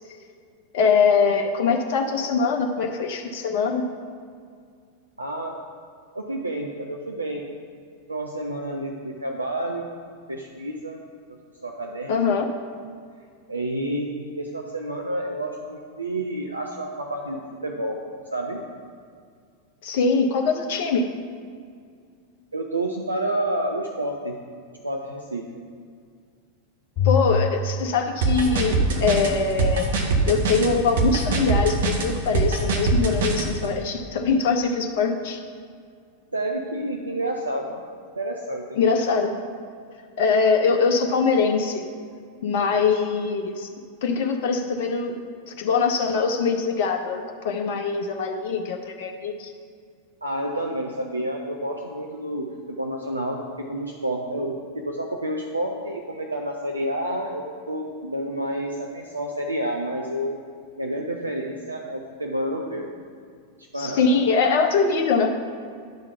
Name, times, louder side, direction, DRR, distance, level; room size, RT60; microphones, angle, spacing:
voice 1, 0.7-3.9 12.1-12.5 19.8-21.1 27.0-29.9 30.3-35.4 38.8-39.3 40.2-41.8 42.4-43.7 44.0-45.1 45.5-49.5 63.8-65.3, left 5 dB, 50° left, 3 dB, 0.6 m, -22 dB
voice 2, 5.2-5.6 6.1-7.5 8.1-10.0 10.3-11.0 11.6-12.2 13.5-18.0 18.3-18.6 22.5-24.4 24.8-25.6 36.3-37.8 38.2-38.8 50.2-60.4 60.8-63.0 63.6-64.2, right 1 dB, 80° right, 1 dB, 0.5 m, -29 dB
Bowed string instrument, 27.0-29.4, left 4 dB, 30° left, 2.0 m, -27 dB
sound 1, 28.2-33.5, right 3 dB, 60° right, 0.9 m, -22 dB
10.5 x 3.8 x 5.7 m, 2.2 s
figure-of-eight pair, 90°, 0 cm